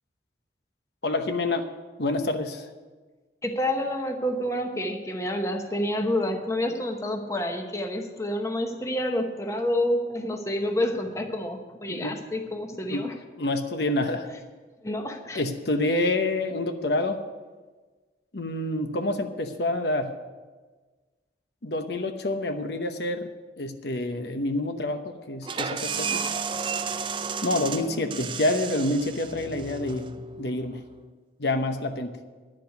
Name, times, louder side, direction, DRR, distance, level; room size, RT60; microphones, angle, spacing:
voice 1, 1.0-1.7 2.0-2.7 11.9-12.2 12.9-13.1 13.4-14.3 15.3-17.2 18.3-20.1 21.6-23.3 23.6-26.3 27.4-30.1 30.4-30.8 31.4-32.2, left 2 dB, 65° left, 7 dB, 1.0 m, -27 dB
voice 2, 3.4-13.1 14.8-15.4, left 1 dB, 15° left, 4 dB, 0.9 m, -28 dB
sound 1, 25.4-30.9, right 6 dB, 25° right, 0.4 m, -33 dB
11.0 x 7.6 x 9.4 m, 1.3 s
head